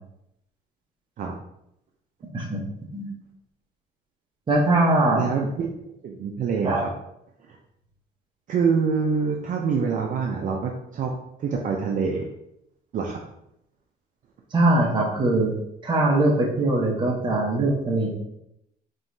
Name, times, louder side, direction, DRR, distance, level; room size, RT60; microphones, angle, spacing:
voice 1, 4.5-5.3 6.6-6.8 14.5-15.5 15.8-18.1, right 2 dB, 25° right, -2 dB, 1.1 m, -21 dB
voice 2, 5.1-5.7 6.0-6.9 8.5-11.1 11.4-12.2 12.9-13.2, right 5 dB, 50° right, 0 dB, 0.6 m, -25 dB
5.4 x 3.0 x 2.7 m, 0.79 s
cardioid pair, 110°, 17 cm